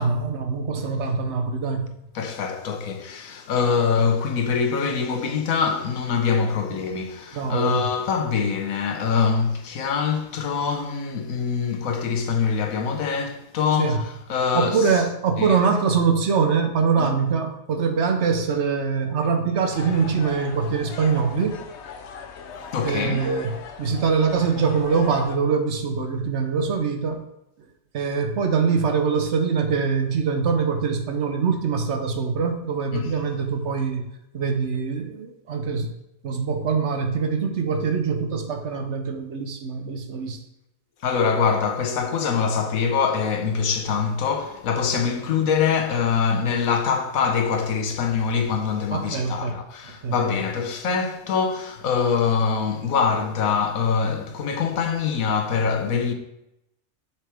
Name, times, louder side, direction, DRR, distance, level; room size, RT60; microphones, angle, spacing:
voice 1, 0.0-2.0 7.3-7.8 13.8-14.0 14.5-21.6 22.8-27.2 27.9-34.0 34.3-35.9 36.2-40.4 48.9-49.6 50.0-50.1, right 5 dB, 60° right, 1.0 m, -23 dB
voice 2, 2.1-14.9 15.4-15.6 17.0-17.1 22.7-23.2 32.9-33.1 41.0-56.1, left 6 dB, 90° left, 1.3 m, -24 dB
sound 1, 19.7-25.4, left 6 dB, 60° left, 0.8 m, -39 dB
7.2 x 5.7 x 3.4 m
omnidirectional pair, 1.4 m